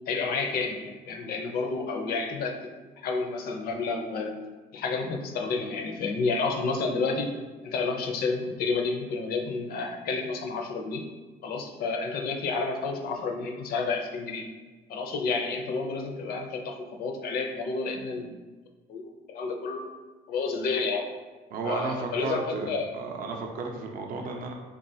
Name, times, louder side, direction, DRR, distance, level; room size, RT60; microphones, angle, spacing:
voice 1, 0.1-2.7 3.0-4.4 4.7-7.3 7.6-11.1 11.4-14.5 14.9-18.3 18.9-19.8 20.3-21.0 21.6-22.4 22.7-22.9 24.2-24.3, left 4 dB, 65° left, 3 dB, 0.5 m, -30 dB
voice 2, 21.5-24.5, right 3 dB, 55° right, 2 dB, 0.5 m, -33 dB
3.7 x 2.3 x 2.6 m, 1.3 s
cardioid pair, 110°, 17 cm